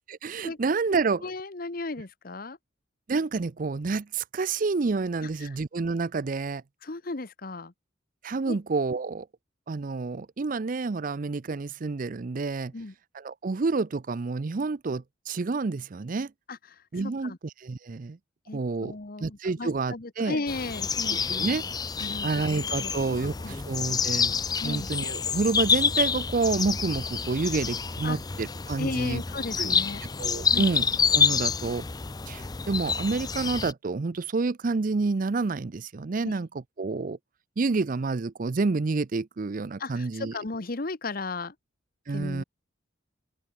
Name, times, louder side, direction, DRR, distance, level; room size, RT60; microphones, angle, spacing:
voice 1, 0.1-1.3 3.1-6.6 8.2-9.3 9.7-12.7 13.1-16.3 16.9-18.2 18.5-19.0 19.2-20.4 21.1-21.6 22.2-24.4 24.6-29.2 29.6-29.8 30.2-31.8 32.3-37.2 37.6-40.4 42.1-42.4, right 3 dB, 45° right, 0.5 m, -29 dB
voice 2, 1.2-2.6 5.2-5.5 6.8-7.7 8.5-8.6 12.7-12.9 16.5-16.8 17.2-17.4 18.5-21.6 22.0-22.3 22.5-23.6 24.6-24.9 28.0-28.2 28.8-30.0 30.5-30.7 36.2-36.3 39.8-41.5 42.1-42.4, left 3 dB, 50° left, 1.0 m, -35 dB
sound 1, 20.5-33.7, left 6 dB, 20° left, 0.5 m, -28 dB
open air
head